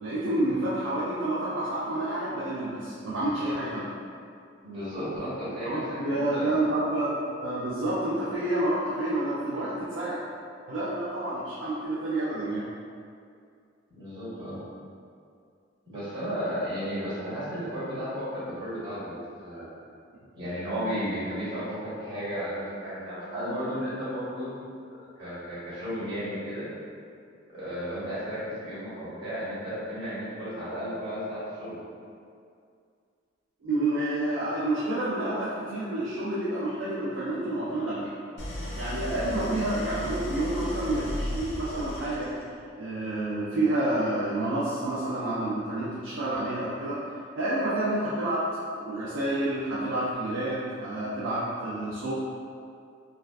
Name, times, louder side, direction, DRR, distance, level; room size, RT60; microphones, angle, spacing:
voice 1, 0.0-3.9 5.6-10.2 10.7-12.7 33.6-38.1 38.7-42.3 42.7-48.4 48.8-52.1, right 1 dB, 80° right, -9 dB, 0.4 m, -29 dB
voice 2, 4.6-6.7 13.9-14.6 15.9-19.7 20.3-24.5 25.2-26.7 27.5-31.8, equal, 65° right, -11 dB, 1.2 m, -34 dB
Idling, 38.4-42.6, left 1 dB, 70° left, 0.5 m, -35 dB
2.3 x 2.3 x 2.2 m, 2.4 s
head